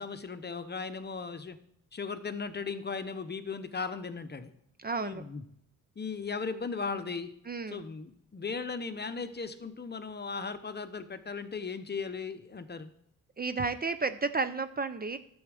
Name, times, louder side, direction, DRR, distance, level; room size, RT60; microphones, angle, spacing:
voice 1, 0.0-1.6 1.9-4.5 5.0-5.4 6.0-7.3 7.7-12.9, left 5 dB, 30° left, 11 dB, 0.8 m, -37 dB
voice 2, 4.8-5.2 7.5-7.8 13.4-15.2, right 4 dB, 30° right, 12 dB, 0.5 m, -32 dB
11.0 x 7.1 x 4.9 m, 0.72 s
cardioid pair, 85°, 33 cm